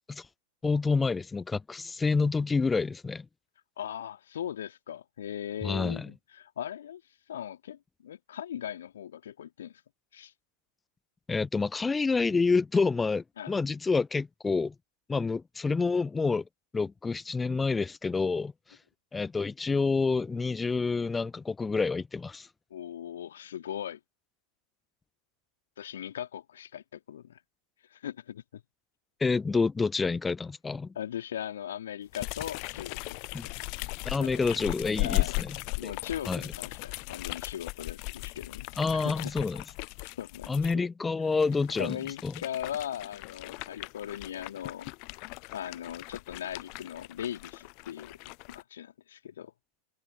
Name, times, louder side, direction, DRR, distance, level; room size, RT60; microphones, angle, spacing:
voice 1, 0.6-3.3 5.6-6.1 11.3-14.7 15.1-16.4 16.7-18.5 19.1-22.5 29.2-30.9 33.3-33.5 34.0-35.5 35.8-35.9 36.3-36.4 38.8-39.6 40.5-42.0 42.2-42.3, left 4 dB, 15° left, 0.9 m, -28 dB
voice 2, 3.8-7.0 7.3-9.8 10.1-10.3 13.4-13.5 22.7-24.0 25.8-27.4 27.9-28.6 30.9-33.6 34.2-34.4 35.0-35.4 35.8-39.3 40.2-40.7 41.8-44.9 45.5-48.2 48.5-49.5, left 10 dB, 65° left, 2.8 m, -39 dB
sound 1, 32.1-40.8 41.3-48.6, left 34 dB, 45° left, 0.6 m, -37 dB
figure-of-eight pair, 90°, 0 cm